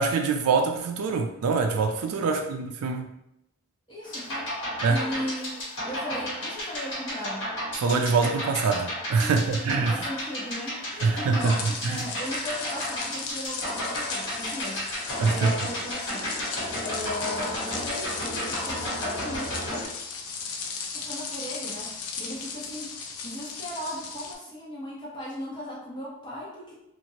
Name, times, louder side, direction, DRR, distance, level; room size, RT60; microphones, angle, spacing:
voice 1, 0.0-3.1 4.8-5.0 7.8-10.1 11.0-12.1 15.2-15.5, right 4 dB, 90° right, 4 dB, 0.3 m, -24 dB
voice 2, 3.9-4.5 4.9-7.5 9.2-16.3 16.8-19.8 20.9-26.8, left 1 dB, 20° left, -6 dB, 0.8 m, -37 dB
sound 1, 4.0-19.9, equal, 55° left, 1.3 m, -33 dB
sound 2, 11.4-24.3, left 5 dB, 85° left, 0.4 m, -36 dB
2.9 x 2.5 x 2.7 m, 0.83 s
head